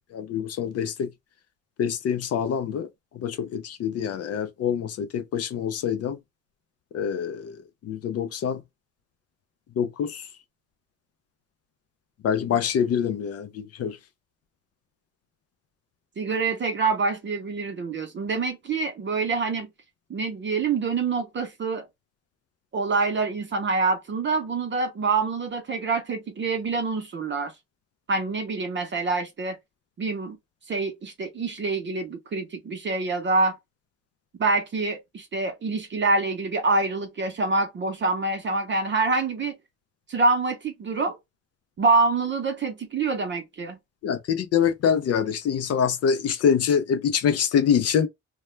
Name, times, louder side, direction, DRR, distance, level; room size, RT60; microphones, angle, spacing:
voice 1, 0.1-1.1 1.8-2.9 3.2-6.2 6.9-7.6 7.8-8.6 9.8-10.3 12.2-14.0 44.0-48.1, left 7 dB, 55° left, 0.4 m, -25 dB
voice 2, 16.2-19.7 20.1-21.8 22.7-27.5 28.1-29.6 30.0-30.4 30.7-33.6 34.4-39.6 40.1-41.2 41.8-43.8, right 3 dB, 40° right, 0.6 m, -26 dB
2.2 x 2.1 x 3.0 m
cardioid pair, 90°, 30 cm